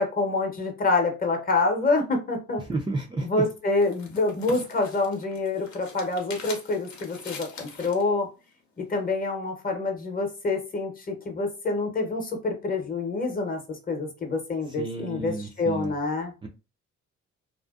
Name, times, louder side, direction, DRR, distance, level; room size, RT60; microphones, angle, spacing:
voice 1, 0.0-2.6 3.2-8.3 8.8-16.3, left 3 dB, 30° left, 3 dB, 0.8 m, -27 dB
voice 2, 2.7-3.4 14.7-15.9 16.4-16.5, right 2 dB, 15° right, -1 dB, 0.4 m, -31 dB
sound 1, 3.3-8.1, left 4 dB, 70° left, 0.8 m, -43 dB
2.5 x 2.1 x 2.3 m, 0.29 s
cardioid pair, 90°, 30 cm